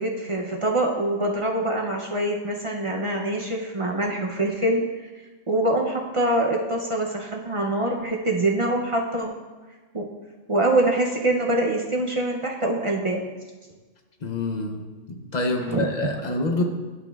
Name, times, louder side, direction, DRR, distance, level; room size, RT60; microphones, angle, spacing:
voice 1, 0.0-5.1 5.5-9.3 9.9-10.1 10.5-13.3 15.7-15.9, right 1 dB, 40° right, -1 dB, 0.5 m, -24 dB
voice 2, 14.2-14.8 15.1-16.6, left 2 dB, 45° left, 3 dB, 0.7 m, -26 dB
11.0 x 5.9 x 2.3 m, 1.3 s
omnidirectional pair, 1.3 m